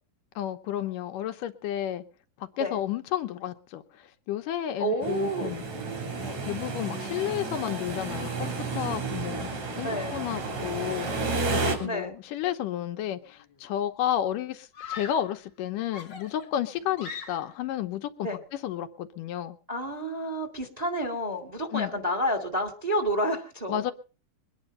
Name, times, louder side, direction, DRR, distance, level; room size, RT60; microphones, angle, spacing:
voice 1, 0.4-2.0 2.4-3.8 4.3-5.6 6.2-11.1 11.5-19.6 21.7-21.9 23.7-23.9, left 11 dB, 75° left, 7 dB, 2.4 m, -32 dB
voice 2, 4.8-5.5 9.8-10.2 11.8-12.1 18.2-18.4 19.7-23.8, equal, 15° right, 4 dB, 1.6 m, -29 dB
sound 1, 5.0-11.8, right 3 dB, 55° right, 4.6 m, -32 dB
Screaming, 13.2-13.7 14.7-15.4 15.9-17.7, left 6 dB, 50° left, 1.4 m, -41 dB
22.5 x 9.8 x 5.4 m, 0.38 s
omnidirectional pair, 3.9 m